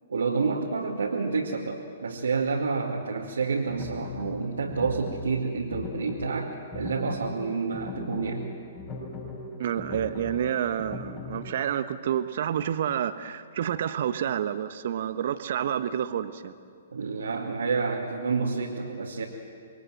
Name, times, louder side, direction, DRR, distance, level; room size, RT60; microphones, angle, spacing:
voice 1, 0.1-8.5 16.9-19.2, right 4 dB, 75° right, -2 dB, 2.4 m, -29 dB
sound 1, 3.4-11.5, left 3 dB, 30° left, 7.3 m, -39 dB
voice 2, 9.6-16.5, right 9 dB, 55° right, 11 dB, 1.2 m, -29 dB
26.5 x 22.0 x 7.7 m, 2.2 s
figure-of-eight pair, 120°, 0 cm